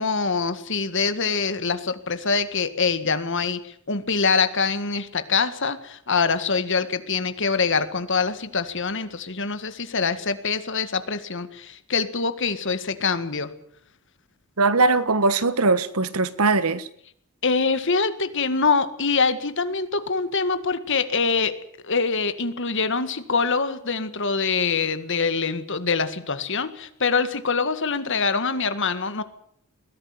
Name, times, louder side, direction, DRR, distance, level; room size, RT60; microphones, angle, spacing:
voice 1, 0.0-13.5 17.4-21.5 21.8-29.2, left 4 dB, 60° left, 1.9 m, -24 dB
voice 2, 14.6-16.9, right 3 dB, 85° right, 1.5 m, -20 dB
21.5 x 16.5 x 9.6 m
head